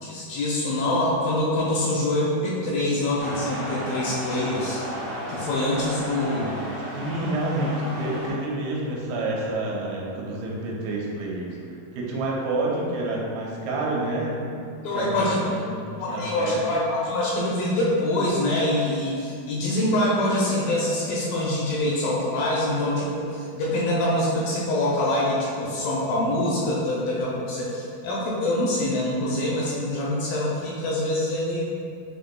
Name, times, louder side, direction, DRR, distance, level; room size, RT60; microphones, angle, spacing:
voice 1, 0.0-4.8 5.3-6.5 14.8-15.5 16.0-31.7, left 1 dB, 80° left, -5 dB, 2.1 m, -25 dB
sound 1, 3.2-8.3, equal, 65° right, 0.9 m, -33 dB
voice 2, 6.9-11.5 11.9-15.8 16.1-16.8, right 2 dB, 85° right, -3 dB, 2.5 m, -28 dB
6.2 x 2.7 x 2.2 m, 2.4 s
omnidirectional pair, 4.4 m